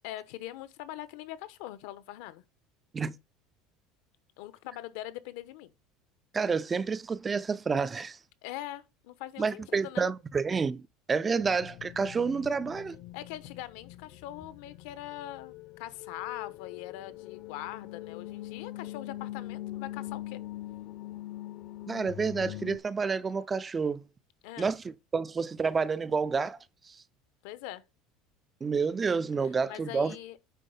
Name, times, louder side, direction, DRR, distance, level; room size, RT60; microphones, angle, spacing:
voice 1, 0.0-2.4 4.4-5.7 8.4-10.0 13.1-20.4 24.4-24.7 27.4-27.8 29.7-30.4, left 14 dB, 75° left, 0.9 m, -42 dB
voice 2, 6.3-8.2 9.4-10.8 11.1-13.0 21.9-24.0 24.6-26.6 26.9-27.0 28.6-30.2, right 5 dB, 15° right, 0.4 m, -29 dB
sound 1, 11.4-22.8, left 15 dB, 50° left, 0.6 m, -43 dB
9.1 x 4.0 x 5.4 m
cardioid pair, 160°, 0 cm